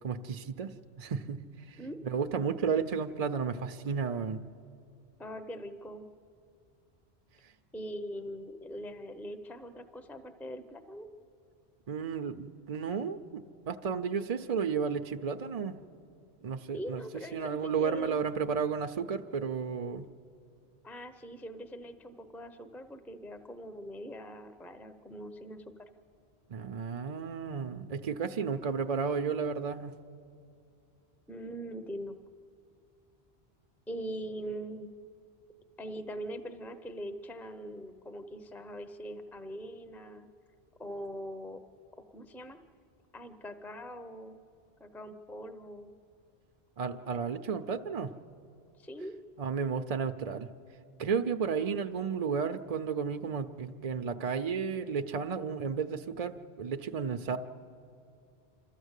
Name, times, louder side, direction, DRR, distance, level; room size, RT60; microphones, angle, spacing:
voice 1, 0.0-0.7 1.0-1.8 2.0-4.4 11.9-15.8 16.4-17.0 17.3-20.1 26.5-30.0 46.8-48.1 49.4-50.5 51.0-57.4, right 6 dB, 45° right, 7 dB, 0.5 m, -33 dB
voice 2, 5.2-6.1 7.7-11.1 16.7-18.2 20.8-25.6 31.3-32.2 33.9-34.9 35.8-40.3 40.8-41.6 42.1-42.6 43.1-44.4 44.8-45.9 48.8-49.1 51.6-51.9, equal, ahead, 9 dB, 0.6 m, -42 dB
27.5 x 13.5 x 8.1 m, 2.5 s
omnidirectional pair, 1.1 m